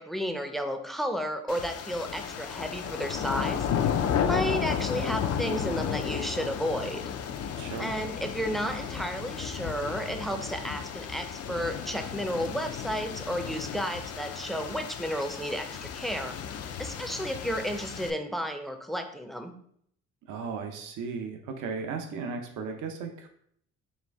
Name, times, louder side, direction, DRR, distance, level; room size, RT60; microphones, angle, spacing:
voice 1, 0.0-3.7 4.3-7.0 7.8-16.4 16.8-19.5, equal, ahead, 6 dB, 0.5 m, -32 dB
sound 1, 1.5-18.1, left 8 dB, 55° left, 0.4 m, -33 dB
voice 2, 7.5-7.9 20.3-23.3, right 5 dB, 80° right, 4 dB, 0.7 m, -36 dB
4.3 x 2.5 x 3.4 m, 0.66 s
cardioid pair, 90°, 30 cm